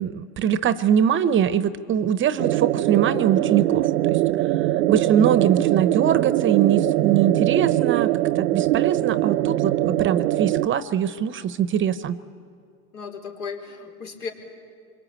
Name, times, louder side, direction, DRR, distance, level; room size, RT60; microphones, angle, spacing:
voice 1, 0.0-12.2, right 9 dB, 25° right, 15 dB, 0.8 m, -23 dB
sound 1, 2.4-10.7, right 15 dB, 85° right, 0.6 m, -22 dB
voice 2, 12.9-14.3, left 5 dB, 80° left, 2 dB, 4.5 m, -35 dB
26.0 x 23.0 x 8.9 m, 2.4 s
hypercardioid pair, 110°, 45 cm